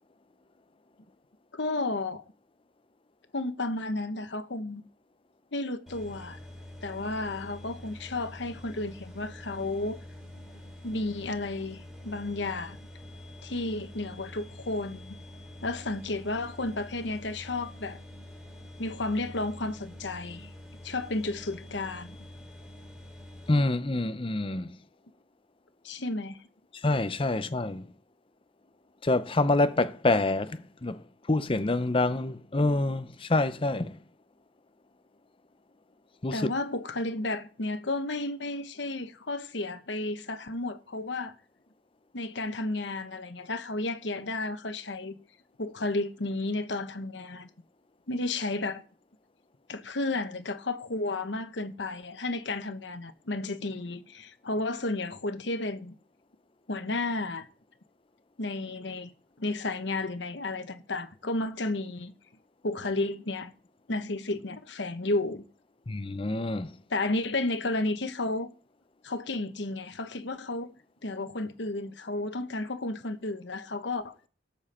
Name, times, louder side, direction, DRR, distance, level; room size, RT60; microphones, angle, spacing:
voice 1, 1.5-2.2 3.3-4.8 5.5-6.4 6.8-10.0 10.8-12.8 13.4-15.2 15.6-18.0 18.8-20.5 20.8-22.2 25.8-26.4 36.3-41.3 42.1-45.2 45.6-47.5 48.1-48.8 49.7-55.9 56.7-57.5 58.4-59.1 59.4-62.1 62.6-63.5 63.9-65.4 66.9-68.5 69.0-70.7 71.0-74.1, left 2 dB, 70° left, 1.2 m, -32 dB
sound 1, 5.9-23.6, left 1 dB, ahead, 3.2 m, -46 dB
voice 2, 23.5-24.7 26.8-27.8 29.0-31.0 31.3-34.0 36.2-36.4 65.9-66.7, left 2 dB, 30° left, 0.6 m, -26 dB
18.0 x 7.2 x 4.4 m
head